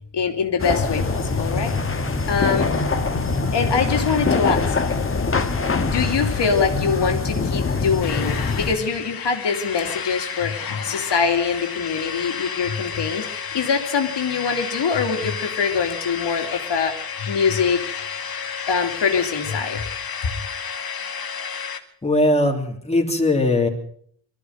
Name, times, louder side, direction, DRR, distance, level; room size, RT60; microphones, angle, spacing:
voice 1, 0.1-1.8 2.3-2.7 3.5-4.7 5.8-17.8 18.7-19.8, left 5 dB, 85° left, 4 dB, 2.8 m, -23 dB
sound 1, 0.6-8.7, left 4 dB, 30° left, 1.8 m, -23 dB
sound 2, 8.0-21.8, left 6 dB, 60° left, 2.2 m, -31 dB
voice 2, 22.0-23.7, left 1 dB, 15° left, 1 dB, 3.2 m, -19 dB
23.5 x 14.0 x 7.9 m, 0.64 s
wide cardioid pair, 150°, 41 cm